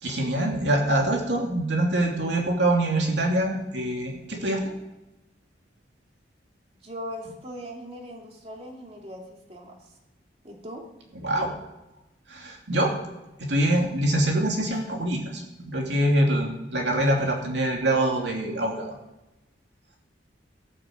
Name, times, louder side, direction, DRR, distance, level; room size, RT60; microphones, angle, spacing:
voice 1, 0.0-4.6 11.2-11.5 12.3-12.9 13.5-18.9, right 1 dB, 70° right, 0 dB, 2.8 m, -24 dB
voice 2, 6.8-9.9 10.4-10.8, equal, 35° right, 0 dB, 2.6 m, -40 dB
18.5 x 6.8 x 7.9 m, 0.99 s
head